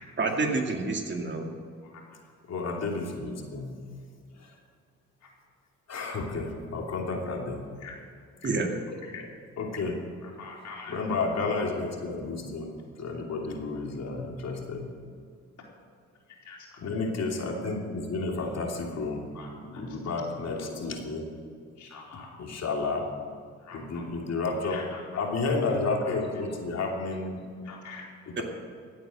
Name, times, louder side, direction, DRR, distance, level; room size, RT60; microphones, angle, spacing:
voice 1, 0.2-1.5 8.4-8.7 28.4-28.5, right 3 dB, 40° right, 3 dB, 2.2 m, -28 dB
voice 2, 2.4-3.7 4.4-4.5 5.9-7.6 8.9-9.3 9.6-10.0 10.9-14.9 16.8-19.3 19.6-21.3 22.4-23.1 23.7-27.4 28.3-28.4, left 3 dB, 60° left, 1 dB, 2.9 m, -31 dB
voice 3, 10.4-10.9 16.5-16.6 19.3-19.5 21.8-22.3 23.7-24.0 24.7-24.8 25.1-25.2 27.7-28.0, left 5 dB, 75° left, -2 dB, 4.4 m, -43 dB
15.5 x 8.9 x 7.7 m, 2.2 s
cardioid pair, 90°, 30 cm